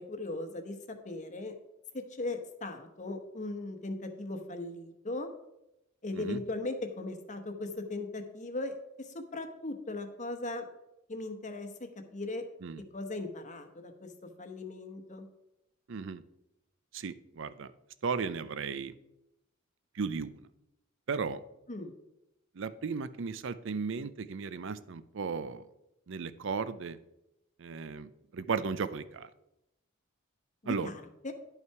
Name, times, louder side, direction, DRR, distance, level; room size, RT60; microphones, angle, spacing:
voice 1, 0.0-1.5 1.9-5.3 6.0-8.8 9.1-10.7 11.1-12.4 12.9-14.1 14.4-15.2 21.7-21.9 30.6-31.3, left 2 dB, 35° left, 7 dB, 1.0 m, -38 dB
voice 2, 15.9-16.2 16.9-17.7 18.0-18.9 20.0-20.4 21.1-21.4 22.6-25.6 26.1-27.0 27.6-29.3 30.7-30.9, right 5 dB, 65° right, 15 dB, 0.5 m, -35 dB
11.0 x 5.6 x 4.7 m, 0.88 s
head